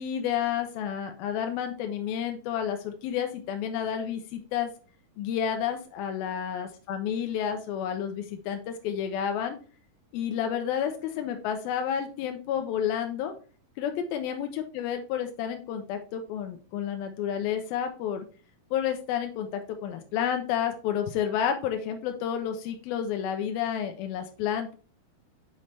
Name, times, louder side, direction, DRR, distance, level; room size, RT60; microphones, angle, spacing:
voice 1, 0.0-4.7 5.2-9.6 10.1-13.3 13.8-18.3 18.7-24.7, left 9 dB, 90° left, 5 dB, 2.6 m, -30 dB
6.4 x 5.7 x 3.2 m, 0.38 s
omnidirectional pair, 4.1 m